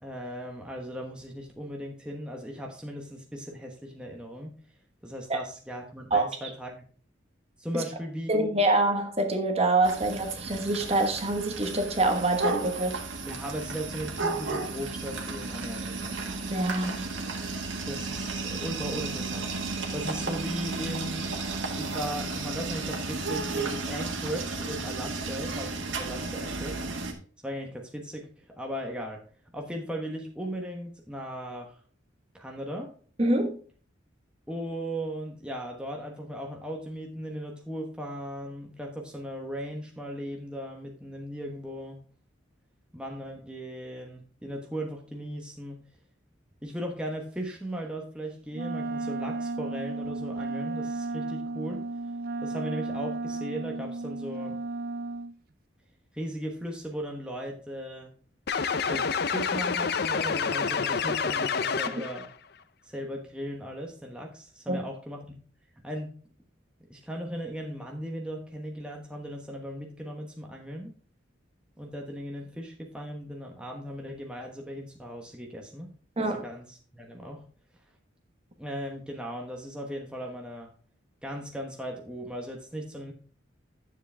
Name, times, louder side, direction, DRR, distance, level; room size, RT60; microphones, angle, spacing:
voice 1, 0.0-4.5 5.0-6.9 7.6-8.6 13.2-16.2 17.9-19.5 19.9-21.3 21.7-26.8 27.4-29.2 29.5-31.8 32.3-32.9 34.5-42.1 42.9-45.9 46.6-51.9 52.4-54.6 56.1-58.1 58.9-62.3 62.8-65.4 65.8-66.1 66.9-70.9 71.8-77.4 78.6-80.7 81.2-83.1, equal, 5° right, 1.1 m, -37 dB
voice 2, 8.3-13.0 16.5-17.0 33.2-33.6 64.7-64.8 76.2-76.4, right 2 dB, 30° right, 1.3 m, -25 dB
sound 1, 9.8-27.1, right 3 dB, 80° right, 1.7 m, -33 dB
Wind instrument woodwind instrument, 48.5-55.3, right 3 dB, 50° right, 0.4 m, -34 dB
sound 2, 58.5-62.3, left 5 dB, 55° left, 0.5 m, -28 dB
9.9 x 7.3 x 3.4 m
head